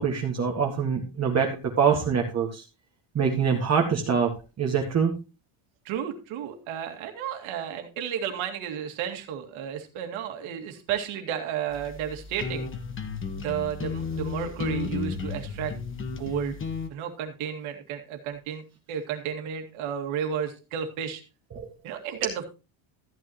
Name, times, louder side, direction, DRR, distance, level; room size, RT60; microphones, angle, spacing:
voice 1, 0.0-2.6 3.2-4.3 4.6-5.1 21.5-21.7, right 6 dB, 30° right, 1 dB, 1.8 m, -24 dB
voice 2, 5.8-12.7 13.4-15.7 16.1-16.6 16.9-18.6 18.9-21.2 21.8-22.5, right 9 dB, 80° right, 5 dB, 2.3 m, -32 dB
sound 1, 11.7-16.9, left 5 dB, 25° left, 1.3 m, -33 dB
14.0 x 9.1 x 3.0 m, 0.29 s
cardioid pair, 145°, 48 cm